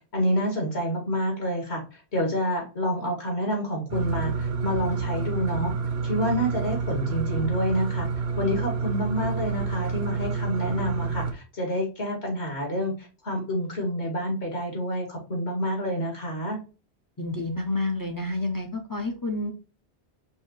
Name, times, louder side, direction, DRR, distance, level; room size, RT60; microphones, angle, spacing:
voice 1, 0.0-5.7 6.0-16.6, equal, 75° left, 0 dB, 2.2 m, -28 dB
sound 1, 3.9-11.3, right 5 dB, 70° right, 1.0 m, -29 dB
voice 2, 17.2-19.5, left 2 dB, 30° left, 4 dB, 0.4 m, -29 dB
5.6 x 2.7 x 3.0 m, 0.33 s
omnidirectional pair, 1.1 m